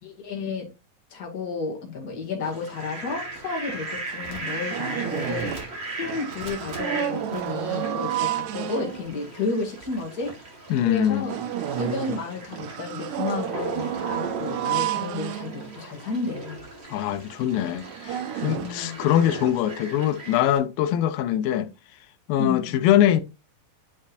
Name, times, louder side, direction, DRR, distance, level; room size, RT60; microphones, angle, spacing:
voice 1, 0.0-0.7 1.1-5.5 6.0-11.4 11.7-16.6 18.5-19.0 22.4-22.8, left 4 dB, 30° left, 2.2 m, -32 dB
Fowl, 2.4-20.6, right 2 dB, 30° right, 1.1 m, -38 dB
sound 1, 3.7-3.8 4.1-5.8 6.0-9.2 9.8-9.9 10.3-10.4 10.9-16.0 16.6-16.7 17.0-17.2 17.7-19.5, right 11 dB, 85° right, 1.7 m, -31 dB
voice 2, 10.7-11.3 16.9-21.7 22.3-23.2, left 11 dB, 90° left, 2.4 m, -23 dB
9.9 x 5.2 x 2.6 m
omnidirectional pair, 4.0 m